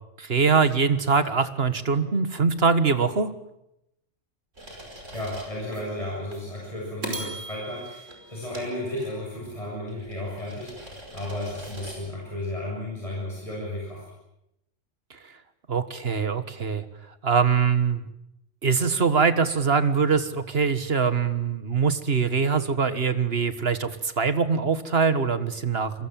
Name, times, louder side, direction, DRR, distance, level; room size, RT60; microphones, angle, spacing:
voice 1, 0.2-3.3 15.7-16.8 17.2-18.1 18.6-26.1, right 5 dB, 55° right, 11 dB, 1.8 m, -23 dB
sound 1, 4.6-5.8 6.3-6.5 7.0-9.4 9.9-12.0, right 1 dB, 85° right, 5.8 m, -40 dB
voice 2, 5.1-14.0, left 1 dB, 30° left, -4 dB, 7.7 m, -33 dB
28.5 x 22.5 x 7.6 m, 0.83 s
omnidirectional pair, 1.3 m